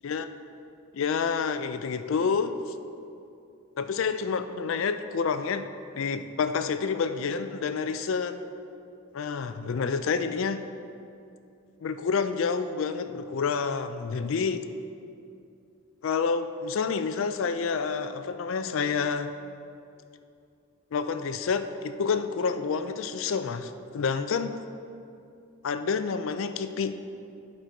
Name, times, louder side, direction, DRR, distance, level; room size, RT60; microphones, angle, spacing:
voice 1, 0.9-2.5 3.8-5.7 5.9-8.4 9.1-10.6 11.8-14.6 16.0-19.3 20.9-24.6 25.6-27.0, left 5 dB, 60° left, 10 dB, 0.4 m, -28 dB
11.5 x 4.3 x 4.5 m, 2.6 s
head